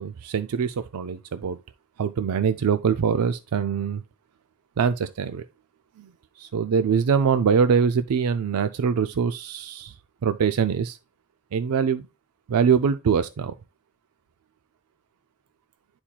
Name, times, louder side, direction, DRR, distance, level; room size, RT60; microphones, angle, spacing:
voice 1, 0.0-1.6 2.0-4.0 4.8-5.4 6.0-9.9 10.2-11.0 11.5-12.0 12.5-13.6, right 6 dB, 90° right, 0.4 m, -23 dB
11.5 x 4.3 x 2.3 m
head